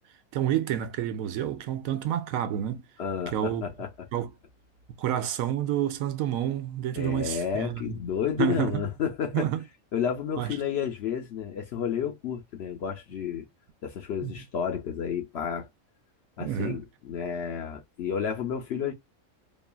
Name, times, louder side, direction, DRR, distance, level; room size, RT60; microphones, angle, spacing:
voice 1, 0.3-2.8 3.3-3.7 4.1-4.3 5.0-8.0 8.4-8.7 9.3-9.6 10.4-10.6 14.2-14.4 16.4-16.8, right 11 dB, 75° right, 1.0 m, -29 dB
voice 2, 3.0-4.1 7.0-9.5 9.9-13.5 13.8-15.7 16.4-18.9, left 7 dB, 60° left, 0.7 m, -31 dB
3.0 x 2.2 x 2.2 m
omnidirectional pair, 1.5 m